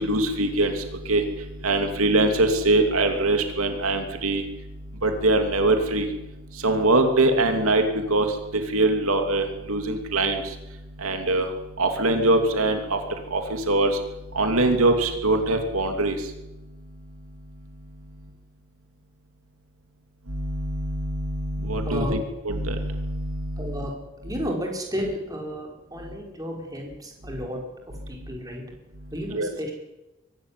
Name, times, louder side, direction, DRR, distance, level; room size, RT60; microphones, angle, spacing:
voice 1, 0.0-4.5 5.0-6.1 6.5-10.6 11.0-14.0 14.3-16.3 20.3-22.2 22.4-23.8 29.3-29.5, right 2 dB, 85° right, 5 dB, 2.7 m, -23 dB
voice 2, 21.8-22.2 23.6-23.9 24.2-27.6 28.1-28.6 29.1-29.7, equal, 15° right, 0 dB, 4.7 m, -32 dB
23.5 x 12.5 x 9.9 m, 0.99 s
head